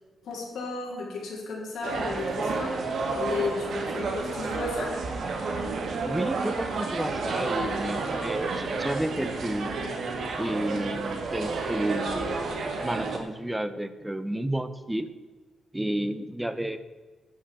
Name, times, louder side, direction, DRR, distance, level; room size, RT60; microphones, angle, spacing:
voice 1, 0.2-4.9, left 4 dB, 65° left, -4 dB, 3.9 m, -34 dB
sound 1, 1.8-13.2, right 3 dB, 50° right, 1.6 m, -30 dB
voice 2, 6.0-9.7 10.4-12.4 12.8-15.1 15.7-16.8, right 1 dB, 5° right, 12 dB, 0.6 m, -31 dB
11.5 x 6.3 x 7.6 m, 1.3 s
wide cardioid pair, 170°, 0 cm